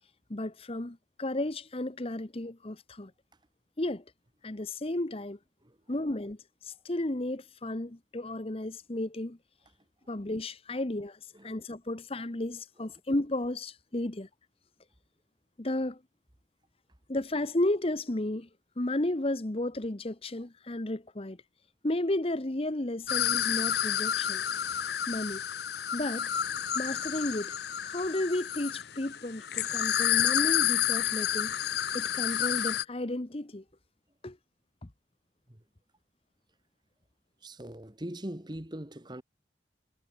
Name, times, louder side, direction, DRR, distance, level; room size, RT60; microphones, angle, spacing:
voice 1, 0.3-3.1 3.8-4.0 4.4-5.4 5.9-6.4 6.6-9.4 10.1-14.3 15.6-16.0 17.1-18.5 18.8-21.4 21.8-24.4 25.1-25.4 25.9-26.3 26.7-27.6 27.8-31.5 31.9-33.6 34.2-34.4, left 1 dB, 30° left, 1.0 m, -33 dB
sound 1, 23.1-32.8, left 10 dB, 60° left, 0.7 m, -30 dB
voice 2, 37.4-39.2, right 1 dB, 25° right, 1.6 m, -41 dB
head